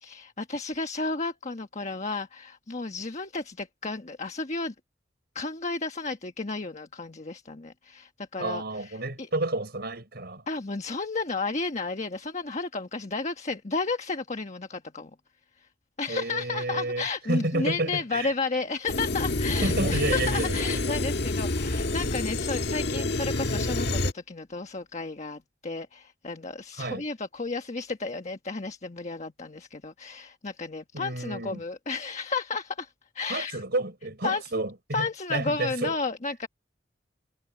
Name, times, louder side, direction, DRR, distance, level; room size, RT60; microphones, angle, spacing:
voice 1, 0.0-4.7 5.3-9.3 10.5-15.1 16.0-33.6 34.2-34.4 34.9-36.5, left 3 dB, 40° left, 1.3 m, -32 dB
voice 2, 8.4-10.4 16.1-18.3 19.6-20.6 26.8-27.0 30.9-31.6 33.3-36.0, right 2 dB, 60° right, 5.8 m, -30 dB
sound 1, 18.9-24.1, left 2 dB, 60° left, 1.6 m, -28 dB
head